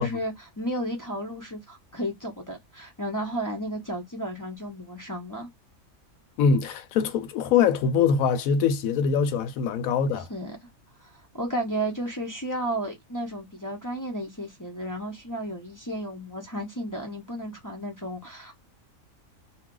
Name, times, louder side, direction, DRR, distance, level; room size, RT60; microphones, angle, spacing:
voice 1, 0.0-5.5 10.3-10.6 11.0-18.6, right 1 dB, 20° left, 0.5 m, -33 dB
voice 2, 6.4-10.3, left 6 dB, 85° left, 1.0 m, -23 dB
2.3 x 2.3 x 3.7 m
omnidirectional pair, 1.4 m